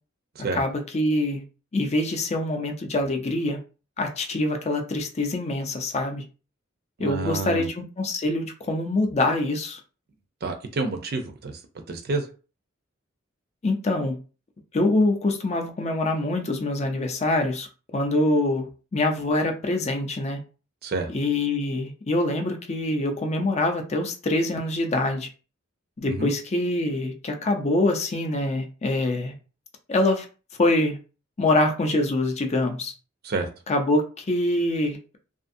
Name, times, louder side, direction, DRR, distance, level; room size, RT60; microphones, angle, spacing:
voice 1, 0.5-1.4 1.7-3.6 4.0-6.2 7.0-9.8 13.6-14.2 14.7-20.4 21.1-25.3 26.0-29.3 29.9-30.3 30.6-31.0 31.4-32.9 33.7-35.2, left 2 dB, 35° left, 0.5 m, -25 dB
voice 2, 7.0-7.7 10.4-11.6 11.9-12.2 20.8-21.1 26.1-26.3 33.2-33.5, right 3 dB, 55° right, 0.5 m, -28 dB
2.6 x 2.5 x 2.5 m
head